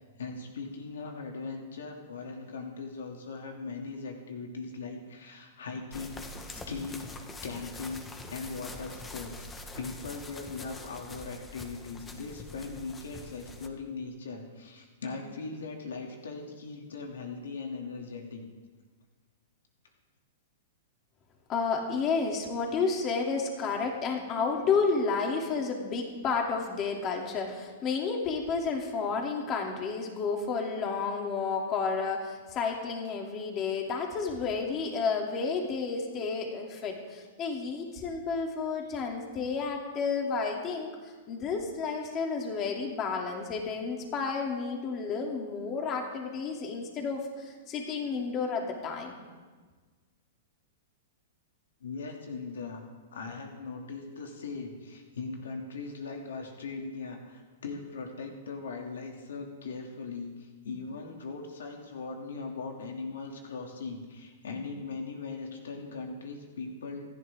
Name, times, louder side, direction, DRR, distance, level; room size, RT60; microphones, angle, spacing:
voice 1, 0.0-18.4 51.8-52.8 53.1-67.1, left 4 dB, 85° left, 2 dB, 2.6 m, -39 dB
sound 1, 5.9-13.7, left 2 dB, 15° left, 1.5 m, -44 dB
voice 2, 21.5-40.9 41.3-49.2, left 5 dB, 30° left, 1 dB, 2.8 m, -31 dB
27.5 x 11.0 x 3.7 m, 1.4 s
hypercardioid pair, 130°, 0 cm